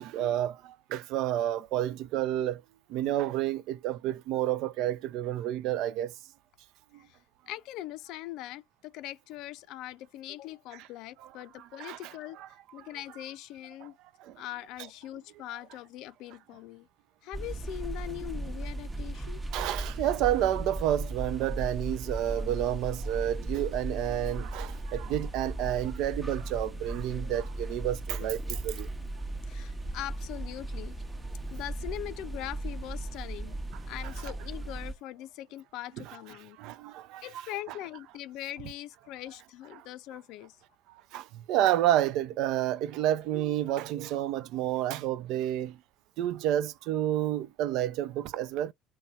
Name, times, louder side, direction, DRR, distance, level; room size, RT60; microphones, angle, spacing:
voice 1, 0.0-2.6 2.9-6.1 11.8-12.1 12.4-12.5 14.2-14.4 19.5-28.9 36.6-37.3 41.1-45.8 46.2-48.7, right 12 dB, 60° right, 0.3 m, -30 dB
voice 2, 7.5-12.4 12.7-13.9 14.4-16.9 17.2-19.4 29.5-31.0 31.5-33.6 33.9-36.6 37.2-40.6, left 14 dB, 60° left, 0.4 m, -41 dB
sound 1, 17.3-34.9, right 2 dB, 20° right, 0.7 m, -37 dB
2.7 x 2.2 x 3.9 m
hypercardioid pair, 80°, 0 cm